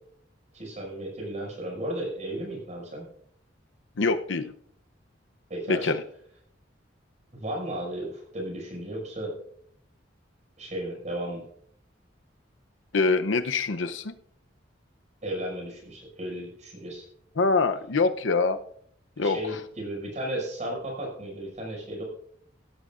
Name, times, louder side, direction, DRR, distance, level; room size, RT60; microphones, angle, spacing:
voice 1, 0.5-3.0 5.5-5.9 7.3-9.4 10.6-11.4 15.2-17.0 19.2-22.0, right 1 dB, 40° right, -1 dB, 5.9 m, -34 dB
voice 2, 4.0-4.5 5.7-6.0 12.9-14.2 17.4-18.6 19.2-19.4, left 3 dB, 80° left, 10 dB, 0.7 m, -24 dB
16.5 x 13.5 x 2.5 m, 0.66 s
head